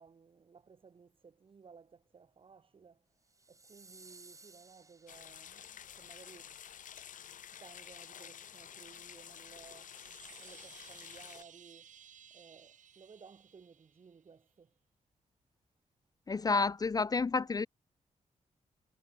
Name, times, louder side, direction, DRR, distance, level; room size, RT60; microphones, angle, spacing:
voice 1, 0.0-3.0 3.5-6.6 7.5-10.0 10.4-11.9 12.3-14.8, right 5 dB, 45° right, 5.5 m, -58 dB
sound 1, 3.2-5.7, right 3 dB, 25° right, 5.1 m, -58 dB
sound 2, 5.1-11.4, left 9 dB, 85° left, 5.3 m, -50 dB
Chime, 9.6-14.3, right 8 dB, 75° right, 2.5 m, -58 dB
voice 2, 16.3-17.7, left 4 dB, 30° left, 0.6 m, -30 dB
wide cardioid pair, 135°, 13 cm